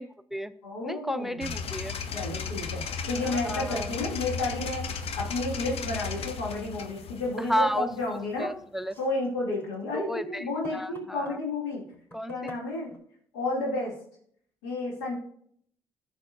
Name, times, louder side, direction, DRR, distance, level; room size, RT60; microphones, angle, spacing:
voice 1, 0.0-0.5 0.8-2.0 3.2-3.9 7.5-8.9 9.9-10.5 10.7-11.4 12.1-12.5, equal, 5° right, 14 dB, 0.5 m, -32 dB
voice 2, 0.6-1.5 2.1-8.5 9.0-11.8 12.3-12.9 13.3-13.9 14.6-15.2, left 2 dB, 85° left, -2 dB, 2.7 m, -31 dB
sound 1, 1.4-8.4, left 6 dB, 60° left, 0.9 m, -35 dB
sound 2, 4.6-4.7 5.0-5.3 7.7-8.2 8.8-11.4 11.9-13.0, right 1 dB, 20° left, 3.8 m, -51 dB
14.5 x 6.9 x 2.6 m, 0.64 s
hypercardioid pair, 45°, 11 cm